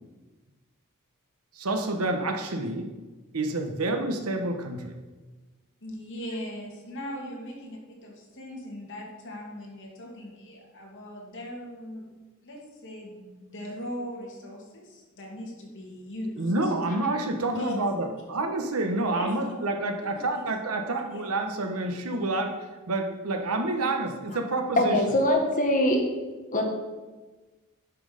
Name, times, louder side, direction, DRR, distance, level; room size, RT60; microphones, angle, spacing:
voice 1, 1.5-2.9 3.3-4.9 16.4-25.0, right 2 dB, 75° right, 4 dB, 1.2 m, -28 dB
voice 2, 5.8-12.2 12.4-16.7 17.5-18.1 19.1-19.7 20.0-20.5 20.9-21.3, equal, 60° left, -1 dB, 2.3 m, -39 dB
voice 3, 24.8-26.0 26.5-26.6, left 1 dB, 40° left, 2 dB, 1.5 m, -22 dB
9.9 x 6.2 x 5.2 m, 1.2 s
head